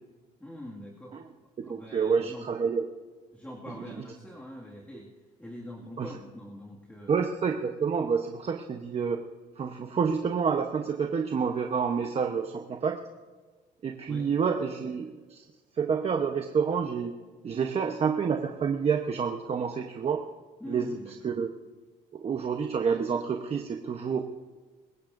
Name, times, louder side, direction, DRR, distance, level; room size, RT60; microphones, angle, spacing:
voice 1, 0.4-1.2 1.6-2.5 3.3-5.1 5.4-7.1 14.1-14.3 20.6-21.4, left 1 dB, 10° left, -3 dB, 2.0 m, -43 dB
voice 2, 1.7-2.8 3.8-3.9 6.0-6.1 7.1-9.2 9.6-13.0 13.8-15.4 15.8-17.1 17.4-20.2 20.7-20.9 21.2-21.5 22.1-24.2, right 6 dB, 35° right, 3 dB, 0.9 m, -28 dB
25.0 x 15.0 x 2.6 m, 1.3 s
cardioid pair, 110°, 17 cm